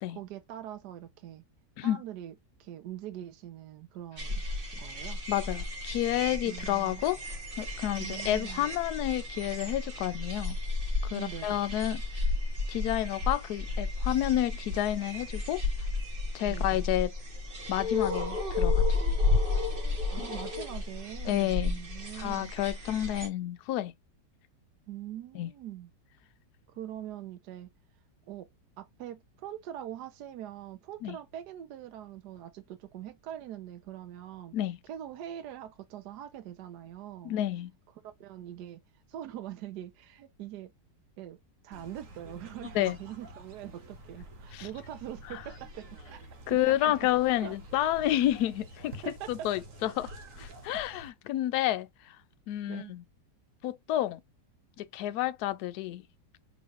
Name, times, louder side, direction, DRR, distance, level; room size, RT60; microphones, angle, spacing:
voice 1, 0.1-1.4 1.8-2.3 2.6-4.4 4.7-5.2 6.4-7.0 8.0-8.7 11.1-11.7 16.5-16.9 20.1-22.5 24.9-25.9 26.7-27.7 28.3-28.5 28.8-34.6 34.8-37.3 38.0-38.8 39.1-40.7 41.2-46.2 46.5-47.0 47.4-47.6 49.0-49.5 52.7-52.9, right 11 dB, 70° right, 1.2 m, -43 dB
sound 1, 4.2-23.3, left 3 dB, 35° right, 1.4 m, -32 dB
voice 2, 5.3-7.2 7.6-10.6 11.1-12.0 12.7-15.6 16.3-17.1 17.7-18.8 20.2-20.3 21.3-21.8 22.2-23.9 25.3-25.5 31.0-31.2 34.5-34.8 37.2-37.7 42.7-43.0 44.5-44.7 46.5-49.0 49.3-50.1 50.4-51.9 52.5-53.0 53.6-54.2 54.8-56.0, left 13 dB, 70° left, 1.0 m, -30 dB
sound 2, 41.7-51.1, right 1 dB, 50° right, 1.3 m, -48 dB
4.1 x 3.1 x 3.0 m
omnidirectional pair, 1.9 m